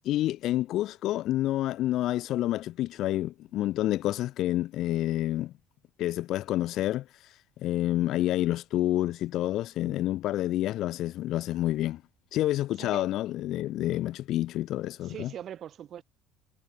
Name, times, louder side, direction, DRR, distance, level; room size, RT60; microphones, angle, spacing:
voice 1, 0.0-5.5 6.0-7.0 7.6-12.0 12.3-15.3, left 14 dB, 45° left, 1.3 m, -28 dB
voice 2, 12.7-13.0 15.0-16.0, right 10 dB, 30° right, 4.1 m, -42 dB
cardioid pair, 180°, 0 cm